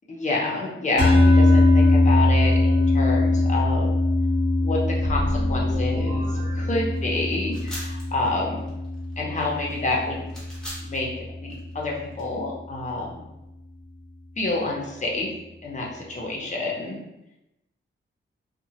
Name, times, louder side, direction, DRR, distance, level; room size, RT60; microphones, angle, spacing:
voice 1, 0.1-3.9 4.6-8.6 9.2-10.3 10.8-11.1 11.4-13.2 14.4-15.3 15.6-17.0, left 2 dB, 35° left, -2 dB, 0.5 m, -28 dB
sound 1, 1.0-11.4, left 2 dB, 50° right, 1.1 m, -21 dB
sound 2, 4.9-7.5, equal, 65° right, 0.6 m, -34 dB
sound 3, 6.9-12.3, equal, 5° left, 0.7 m, -41 dB
2.8 x 2.1 x 2.8 m, 0.91 s
wide cardioid pair, 175°, 21 cm